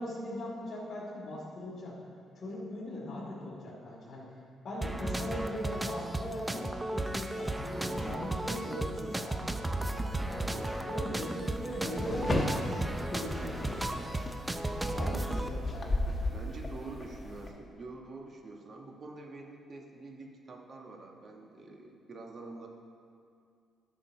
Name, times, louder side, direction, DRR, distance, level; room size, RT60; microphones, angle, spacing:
voice 1, 0.0-1.9 2.4-4.2 4.6-6.7 6.9-10.6 10.9-13.9 14.9-16.0, left 1 dB, 40° left, -8 dB, 2.7 m, -40 dB
sound 1, 4.8-15.5, right 1 dB, 15° right, 0.5 m, -35 dB
voice 2, 10.4-11.3 11.6-11.9 16.3-22.7, right 3 dB, 45° right, 1 dB, 1.3 m, -47 dB
sound 2, 11.4-17.5, left 2 dB, 25° left, 1.3 m, -36 dB
12.0 x 6.3 x 4.7 m, 2.3 s
cardioid pair, 90°, 0 cm